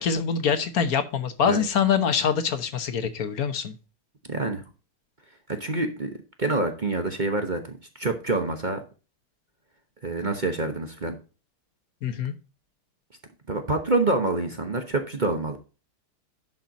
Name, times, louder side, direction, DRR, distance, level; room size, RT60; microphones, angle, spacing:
voice 1, 0.0-3.7 12.0-12.3, left 7 dB, 50° left, 1.3 m, -24 dB
voice 2, 4.3-4.6 5.6-6.1 6.4-7.6 8.0-8.8 10.0-11.1 13.5-15.6, right 2 dB, 35° right, 0.8 m, -26 dB
11.5 x 4.5 x 5.2 m
omnidirectional pair, 2.3 m